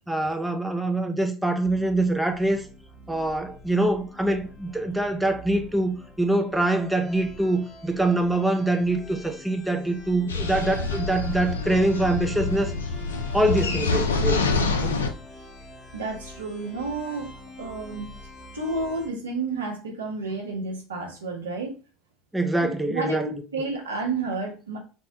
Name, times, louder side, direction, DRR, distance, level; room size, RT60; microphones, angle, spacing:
voice 1, 0.1-2.6 3.1-12.7 13.3-14.5 14.8-15.0 22.3-23.3, right 2 dB, 5° right, 0.5 m, -24 dB
sound 1, 1.6-19.1, left 1 dB, 45° left, 1.1 m, -45 dB
sound 2, 10.3-15.1, left 3 dB, 80° left, 0.3 m, -26 dB
voice 2, 15.9-17.3 17.6-18.1 18.5-21.7 22.6-24.8, right 3 dB, 80° right, 0.7 m, -31 dB
3.5 x 2.1 x 2.7 m
figure-of-eight pair, 70°, 0 cm